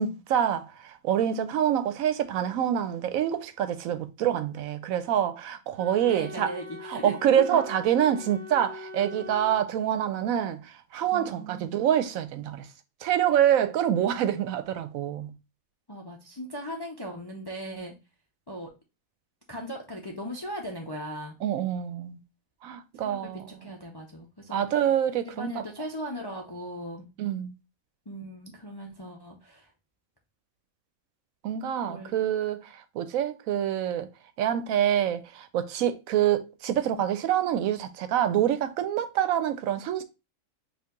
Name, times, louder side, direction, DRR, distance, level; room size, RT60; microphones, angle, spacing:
voice 1, 0.0-6.5 6.8-12.7 13.0-15.3 21.4-22.2 22.6-23.5 24.5-25.6 27.2-27.5 31.4-34.1 34.4-40.0, right 10 dB, 85° right, 1.0 m, -26 dB
Wind instrument woodwind instrument, 5.7-9.6, left 2 dB, 35° right, 0.7 m, -42 dB
voice 2, 6.1-7.6 11.0-11.8 15.9-17.9 18.5-18.7 19.5-21.3 23.0-23.2 23.6-24.6 25.3-27.1 28.1-29.7 31.8-32.1, equal, 30° left, 0.4 m, -38 dB
4.5 x 2.5 x 3.7 m
omnidirectional pair, 1.4 m